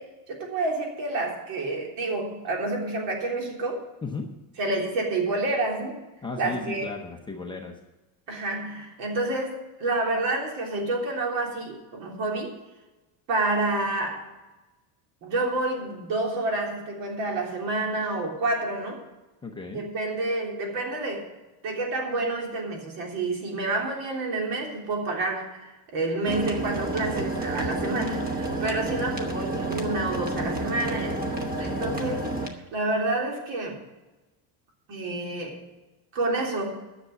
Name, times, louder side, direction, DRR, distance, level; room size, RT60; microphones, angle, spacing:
voice 1, 0.0-3.8 4.6-6.0 6.4-6.9 8.3-12.5 13.3-14.3 15.2-19.0 19.7-21.3 21.6-33.8 34.9-35.6 36.1-36.8, right 2 dB, 65° right, 0 dB, 3.4 m, -29 dB
voice 2, 6.2-7.8 19.4-19.8 29.0-29.3 31.8-32.1, left 4 dB, 10° left, 1 dB, 0.6 m, -35 dB
sound 1, 26.3-32.5, right 2 dB, 20° right, 1.0 m, -30 dB
10.5 x 7.0 x 9.0 m, 1.1 s
cardioid pair, 180°, 47 cm